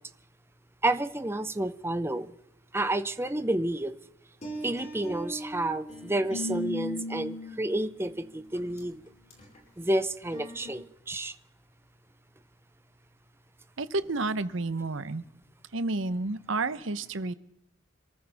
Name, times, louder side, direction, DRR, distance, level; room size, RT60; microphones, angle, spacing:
voice 1, 0.8-2.3 2.7-3.9 4.6-9.0 9.8-11.3, right 1 dB, 10° right, 11 dB, 0.6 m, -30 dB
sound 1, 4.4-8.0 8.5-8.8 9.3-9.6 10.3-10.7, left 1 dB, 35° left, 5.2 m, -37 dB
voice 2, 13.8-15.2 15.7-17.3, right 3 dB, 70° right, 14 dB, 0.9 m, -30 dB
26.5 x 14.0 x 3.5 m, 0.78 s
head